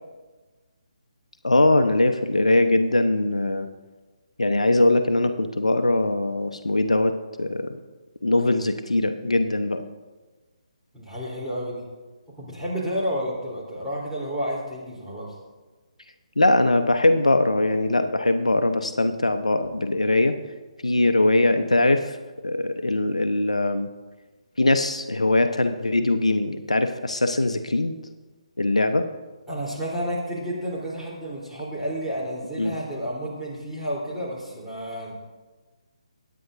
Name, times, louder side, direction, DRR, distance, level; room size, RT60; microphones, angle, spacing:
voice 1, 1.4-3.7 4.4-7.8 8.2-9.8 16.4-20.4 20.8-22.2 22.4-23.9 24.6-27.9 28.6-29.1 32.6-32.7, left 2 dB, 75° left, 8 dB, 0.8 m, -21 dB
voice 2, 10.9-11.9 12.4-15.3 29.5-35.1, equal, 5° right, -9 dB, 3.5 m, -31 dB
22.0 x 9.4 x 2.6 m, 1.3 s
figure-of-eight pair, 145°, 4 cm